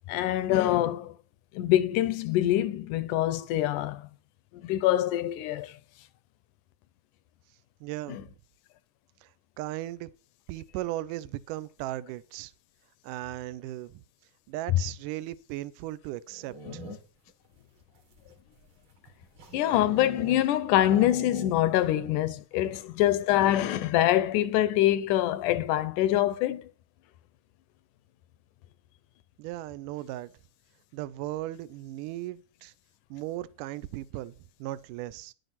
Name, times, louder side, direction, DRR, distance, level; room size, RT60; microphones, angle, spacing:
voice 1, 0.1-1.2 1.5-4.1 4.5-5.8 8.1-8.2 19.5-26.7, left 13 dB, 75° left, 2.0 m, -25 dB
voice 2, 7.8-8.3 9.2-9.3 9.6-10.1 10.5-12.5 13.0-14.0 14.5-16.8 29.4-30.4 30.9-32.7 33.1-35.3, right 15 dB, 80° right, 2.1 m, -37 dB
sound 1, 16.3-17.3 18.0-20.5 20.8-21.9 22.2-22.3 22.5-22.9, right 1 dB, 40° right, 2.5 m, -42 dB
11.0 x 7.8 x 5.8 m
omnidirectional pair, 3.9 m